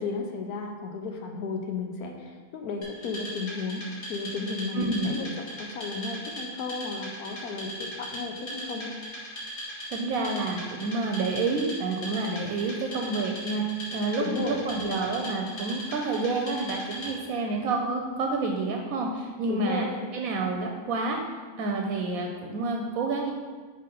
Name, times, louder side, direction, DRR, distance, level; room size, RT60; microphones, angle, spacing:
voice 1, 0.0-3.8 4.1-5.3 5.6-8.9 14.2-14.6 19.5-19.9, left 4 dB, 85° left, 3 dB, 1.2 m, -33 dB
Wood, 2.8-17.4, equal, 45° left, 2.0 m, -39 dB
voice 2, 4.7-5.1 9.9-13.6 13.9-19.9 20.1-21.2 21.6-23.3, right 3 dB, 75° right, 1 dB, 1.0 m, -29 dB
5.7 x 3.3 x 5.3 m, 1.5 s
omnidirectional pair, 1.5 m